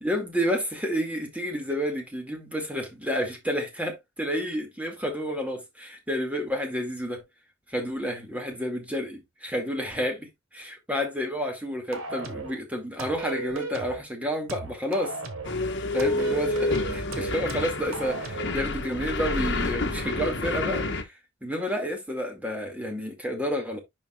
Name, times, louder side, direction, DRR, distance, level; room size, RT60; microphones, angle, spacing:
voice 1, 0.0-7.2 7.7-15.2 15.9-23.8, equal, 5° right, 2.1 m, -30 dB
sound 1, 11.9-12.6 13.0-14.0 14.5-15.6 16.0-18.6, right 3 dB, 80° right, 1.5 m, -36 dB
sound 2, 15.4-21.0, left 2 dB, 60° left, 1.3 m, -29 dB
11.0 x 4.9 x 2.3 m
head